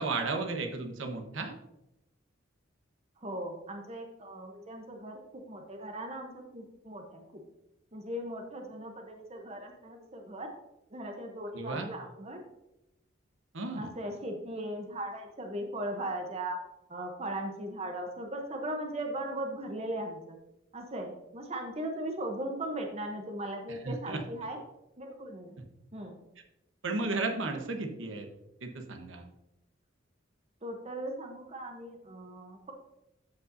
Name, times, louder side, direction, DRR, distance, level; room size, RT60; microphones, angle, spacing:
voice 1, 0.0-1.5 11.5-11.9 13.5-13.9 23.8-24.2 26.8-28.3 28.6-29.2, right 3 dB, 70° right, 4 dB, 1.1 m, -34 dB
voice 2, 3.2-7.4 7.9-10.5 10.9-12.4 13.8-16.6 16.9-20.4 20.7-24.6 25.0-25.6 25.9-26.2 30.6-32.7, right 1 dB, 30° right, 3 dB, 0.8 m, -38 dB
13.0 x 5.4 x 2.7 m, 0.90 s
head